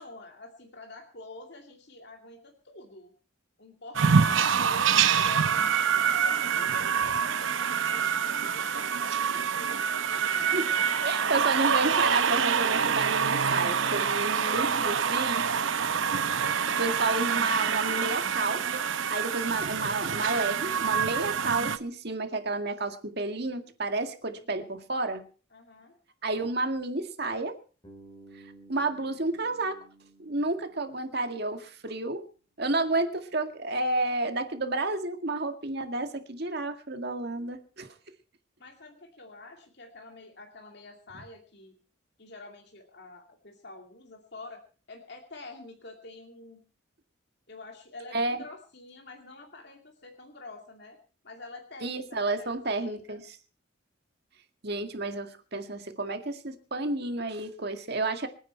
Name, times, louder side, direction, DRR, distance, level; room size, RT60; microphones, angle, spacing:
voice 1, 0.0-3.1 3.6-10.7 24.4-24.8 25.5-26.0 38.6-41.8 42.2-44.6 44.9-46.6 47.5-51.0 51.2-53.2, left 2 dB, 55° left, 2 dB, 2.5 m, -47 dB
sound 1, 4.0-21.8, right 7 dB, 70° right, 0.9 m, -26 dB
voice 2, 11.0-15.5 16.8-25.2 26.2-27.6 28.7-29.8 30.2-32.2 32.6-37.9 48.1-48.4 51.8-53.4 54.6-58.3, right 2 dB, 50° right, 6 dB, 2.0 m, -31 dB
Bass guitar, 27.8-31.8, right 2 dB, 20° left, 3.6 m, -54 dB
25.0 x 9.8 x 4.5 m, 0.38 s
head